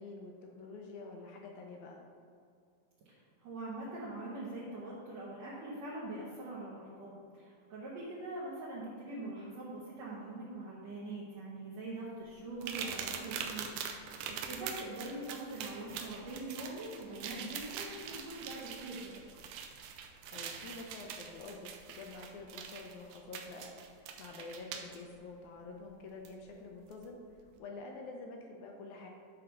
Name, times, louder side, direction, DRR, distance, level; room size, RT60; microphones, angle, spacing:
voice 1, 0.0-2.0 15.0-15.2 20.3-29.1, left 3 dB, 75° left, 1 dB, 1.8 m, -48 dB
voice 2, 3.1-19.2, right 2 dB, 65° right, -7 dB, 2.0 m, -43 dB
sound 1, 12.6-25.0 26.2-26.3 26.9-27.0, right 7 dB, 85° right, 2.2 m, -43 dB
9.4 x 4.0 x 5.6 m, 2.3 s
omnidirectional pair, 4.0 m